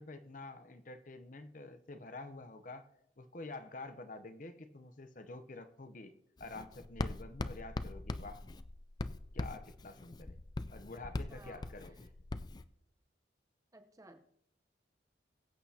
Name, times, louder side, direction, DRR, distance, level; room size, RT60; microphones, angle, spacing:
voice 1, 0.0-2.9 3.2-8.4 9.3-10.4 10.7-12.1, left 2 dB, 45° left, 9 dB, 0.7 m, -48 dB
Writing, 6.4-12.6, left 2 dB, 20° left, 0.3 m, -41 dB
voice 2, 11.3-11.7 13.7-14.2, right 2 dB, 20° right, 8 dB, 0.8 m, -57 dB
22.0 x 8.4 x 2.8 m, 0.76 s
head